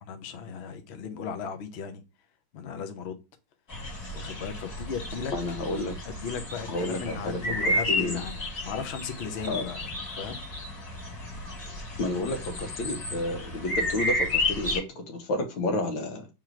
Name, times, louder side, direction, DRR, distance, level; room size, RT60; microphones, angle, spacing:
voice 1, 0.0-2.0 2.5-3.2 4.1-5.3 6.0-9.8 10.1-10.4, left 6 dB, 65° left, 0.6 m, -36 dB
sound 1, 3.7-14.8, left 1 dB, 45° left, 2.2 m, -32 dB
voice 2, 5.3-6.0 6.7-8.2 9.5-9.6 11.7-16.3, left 2 dB, 90° left, 1.8 m, -31 dB
3.8 x 3.0 x 4.4 m
omnidirectional pair, 2.1 m